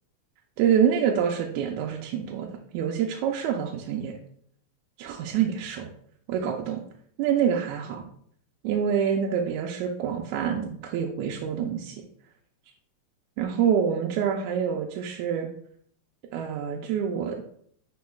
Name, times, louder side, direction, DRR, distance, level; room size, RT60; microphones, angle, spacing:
voice 1, 0.6-2.5 2.7-4.2 5.0-5.9 6.3-6.8 7.2-8.0 8.6-12.0 13.4-15.5 16.3-17.4, right 8 dB, 85° right, 1 dB, 2.0 m, -26 dB
9.4 x 4.3 x 2.3 m, 0.63 s
omnidirectional pair, 3.4 m